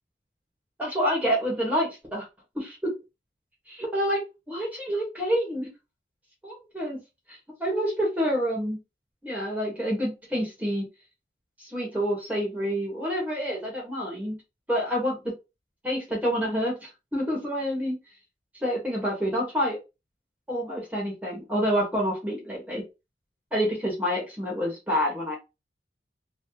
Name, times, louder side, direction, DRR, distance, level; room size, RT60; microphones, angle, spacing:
voice 1, 0.8-2.3 2.6-2.7 3.7-4.2 4.5-5.7 6.4-7.0 7.3-8.8 9.2-10.8 11.6-14.4 14.7-15.2 15.8-17.9 18.5-19.8 20.5-22.8 23.5-25.4, equal, 10° right, -3 dB, 1.1 m, -28 dB
2.8 x 2.3 x 3.8 m, 0.26 s
head